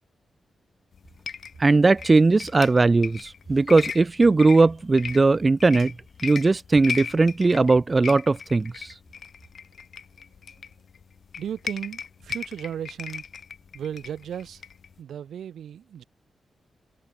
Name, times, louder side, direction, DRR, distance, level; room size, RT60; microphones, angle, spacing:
sound 1, 0.9-15.0, left 6 dB, 60° left, 1.0 m, -38 dB
voice 1, 1.6-5.9 6.2-8.9, right 3 dB, 30° right, 0.6 m, -19 dB
voice 2, 10.2-10.7 11.4-13.2 13.7-14.6 15.0-16.0, right 9 dB, 85° right, 3.0 m, -35 dB
cardioid pair, 100°, 0 cm